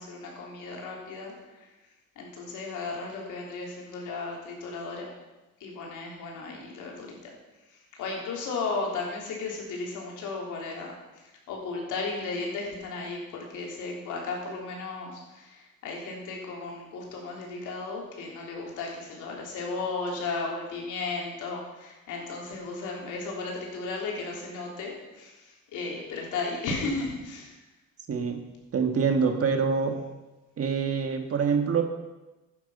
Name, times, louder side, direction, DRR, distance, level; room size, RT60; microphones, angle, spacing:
voice 1, 0.0-1.7 2.2-5.1 5.6-7.2 7.9-10.9 11.2-27.5, left 3 dB, 85° left, -1 dB, 3.4 m, -35 dB
voice 2, 28.1-28.4 28.7-30.1 30.6-31.8, right 5 dB, 50° right, 5 dB, 1.8 m, -25 dB
12.0 x 9.2 x 5.6 m, 1.1 s
cardioid pair, 90°, 30 cm